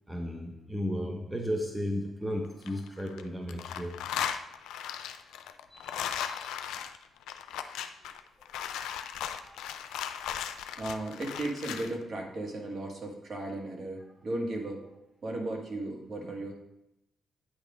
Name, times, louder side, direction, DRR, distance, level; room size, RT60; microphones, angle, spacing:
voice 1, 0.1-4.0 5.7-5.9 6.3-6.4 9.2-9.7 10.1-10.3, equal, 5° right, 0.8 m, -35 dB
sound 1, 2.4-3.2 3.5-11.9, left 9 dB, 85° left, 0.4 m, -37 dB
voice 2, 10.8-14.9 15.2-16.5, right 2 dB, 50° right, 1.7 m, -35 dB
8.7 x 3.5 x 5.0 m
supercardioid pair, 65°, 0 cm